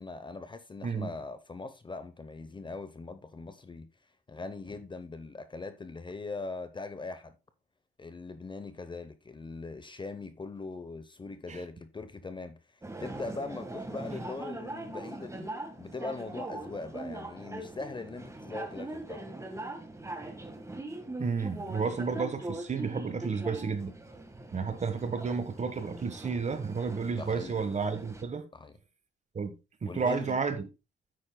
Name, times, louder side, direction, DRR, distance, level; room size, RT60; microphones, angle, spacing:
voice 1, 0.0-3.9 4.3-7.4 8.0-15.5 15.8-19.3 27.2-27.5 28.5-28.7 29.9-30.4, left 3 dB, 25° left, 0.8 m, -41 dB
sound 1, 12.8-28.2, right 2 dB, 15° right, 1.6 m, -41 dB
voice 2, 21.2-23.9 24.5-28.4 29.3-29.5 29.8-30.7, right 5 dB, 35° right, 1.4 m, -31 dB
9.9 x 8.5 x 2.2 m
cardioid pair, 90°, 20 cm